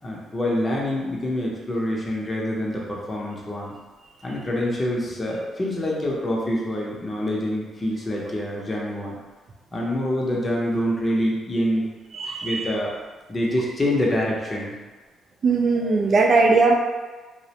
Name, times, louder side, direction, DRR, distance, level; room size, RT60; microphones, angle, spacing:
voice 1, 0.0-3.7 4.2-9.2 9.7-11.9 12.4-12.9 13.3-14.8, left 1 dB, 25° left, -3 dB, 0.6 m, -26 dB
voice 2, 12.1-12.7 15.4-16.7, right 3 dB, 50° right, 2 dB, 0.4 m, -19 dB
2.4 x 2.0 x 2.8 m, 1.3 s
cardioid pair, 90°, 0 cm